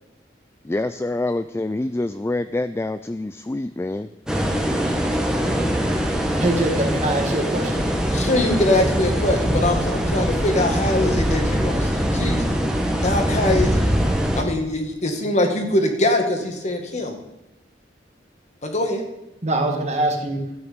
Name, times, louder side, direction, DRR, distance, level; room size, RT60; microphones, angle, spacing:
voice 1, 0.6-4.1, left 2 dB, 15° left, 11 dB, 0.3 m, -26 dB
sound 1, 4.3-14.4, equal, 5° right, 1.4 m, -22 dB
voice 2, 6.4-7.9 19.4-20.5, right 1 dB, 40° right, 3 dB, 1.8 m, -23 dB
voice 3, 8.1-12.5 13.0-13.8 14.3-17.2 18.6-19.0, left 1 dB, 40° left, 4 dB, 1.8 m, -22 dB
12.5 x 9.0 x 5.2 m, 0.94 s
head